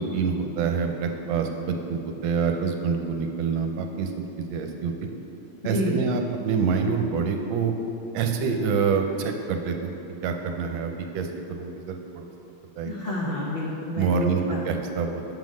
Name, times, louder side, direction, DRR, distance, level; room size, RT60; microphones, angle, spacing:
voice 1, 0.0-4.1 4.5-4.9 5.6-7.7 8.1-9.9 10.2-12.2 12.8-12.9 14.0-15.1, right 5 dB, 80° right, 4 dB, 1.4 m, -26 dB
voice 2, 5.6-5.9 12.8-14.6, left 1 dB, 70° left, -5 dB, 0.5 m, -29 dB
7.6 x 3.9 x 6.1 m, 2.8 s
omnidirectional pair, 2.2 m